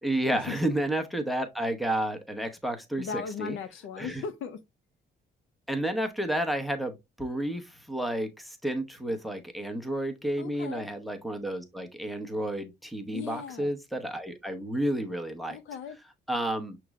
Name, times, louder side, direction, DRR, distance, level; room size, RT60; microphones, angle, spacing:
voice 1, 0.0-3.6 4.0-4.2 5.7-15.6 16.3-16.8, right 1 dB, ahead, 0.9 m, -31 dB
voice 2, 3.0-4.6 10.4-10.9 13.1-13.7 15.5-16.0, left 6 dB, 80° left, 0.6 m, -37 dB
5.9 x 3.1 x 2.3 m
cardioid pair, 90°, 20 cm